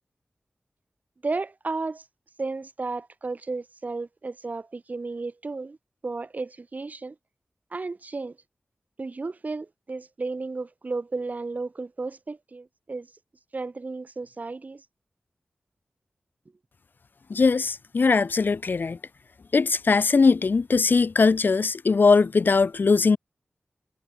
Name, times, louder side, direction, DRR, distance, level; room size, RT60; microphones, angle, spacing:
voice 1, 1.2-2.0 2.4-5.8 6.0-7.1 7.7-8.4 9.0-13.1 13.5-14.8, right 3 dB, 45° right, 4.5 m, -33 dB
voice 2, 17.3-19.0 19.5-23.2, left 4 dB, 65° left, 3.5 m, -20 dB
wide cardioid pair, 90°, 4 cm